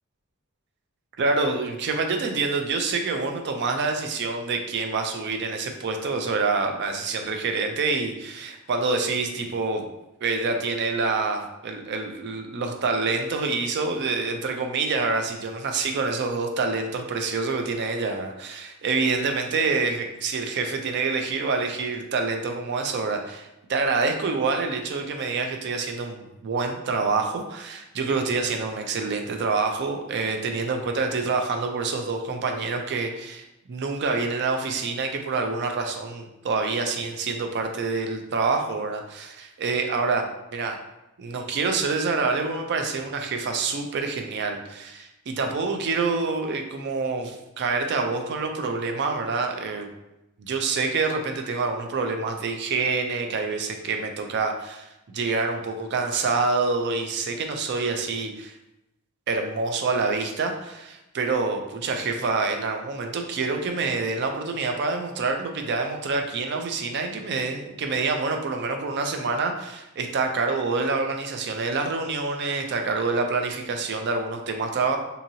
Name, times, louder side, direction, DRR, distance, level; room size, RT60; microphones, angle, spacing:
voice 1, 1.2-9.8 10.2-40.2 40.5-40.8 41.2-49.9 50.4-58.5 59.3-75.0, right 4 dB, 50° right, 4 dB, 0.4 m, -27 dB
2.8 x 2.7 x 2.7 m, 0.92 s
head